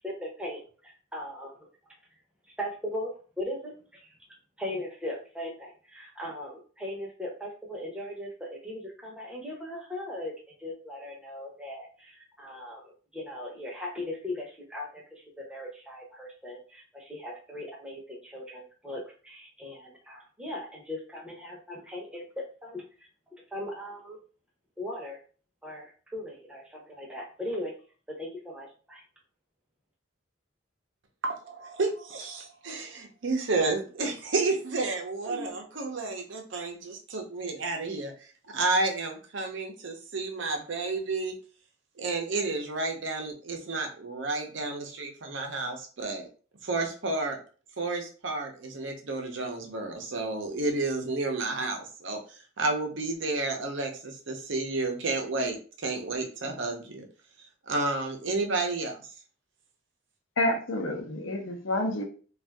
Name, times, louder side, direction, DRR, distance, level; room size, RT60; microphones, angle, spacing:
voice 1, 0.0-1.7 2.6-4.2 4.6-10.3 10.6-23.1 23.5-24.2 24.8-25.2 25.6-27.7 28.1-29.0, left 1 dB, 5° right, -2 dB, 0.7 m, -39 dB
voice 2, 31.2-38.1 38.5-41.3 42.0-46.3 46.6-47.4 47.8-57.0 57.7-59.0, right 3 dB, 65° right, 3 dB, 0.7 m, -31 dB
voice 3, 60.4-62.0, left 1 dB, 70° left, 3 dB, 0.7 m, -28 dB
2.6 x 2.4 x 3.4 m, 0.40 s
head